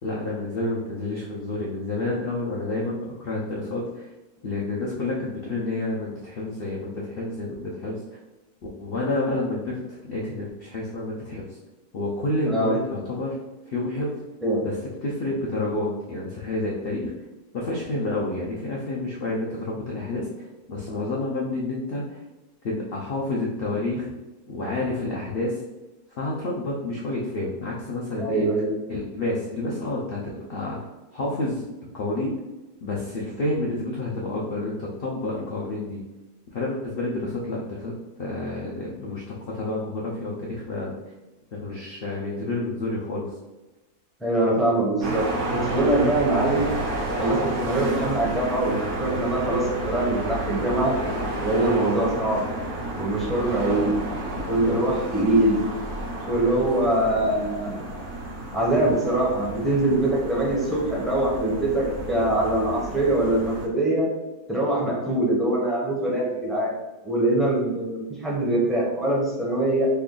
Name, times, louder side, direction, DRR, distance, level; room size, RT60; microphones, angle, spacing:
voice 1, 0.0-4.1 4.4-8.2 8.8-11.6 11.9-13.4 13.7-14.2 14.6-14.8 15.0-17.1 17.5-22.2 22.6-24.1 24.5-25.6 26.2-28.5 28.9-30.8 31.1-31.6 31.9-32.3 32.8-36.0 36.5-37.9 38.2-40.9 41.5-43.4, left 2 dB, 70° left, -4 dB, 0.5 m, -29 dB
voice 2, 28.2-28.7 44.2-46.7 47.2-50.9 51.4-52.4 52.9-53.9 54.5-55.6 56.3-57.8 58.5-64.1 64.5-66.7 67.0-69.9, right 1 dB, ahead, -5 dB, 0.5 m, -23 dB
sound 1, 45.0-63.7, right 1 dB, 60° right, 1.0 m, -31 dB
3.3 x 2.3 x 3.7 m, 1.1 s
omnidirectional pair, 1.7 m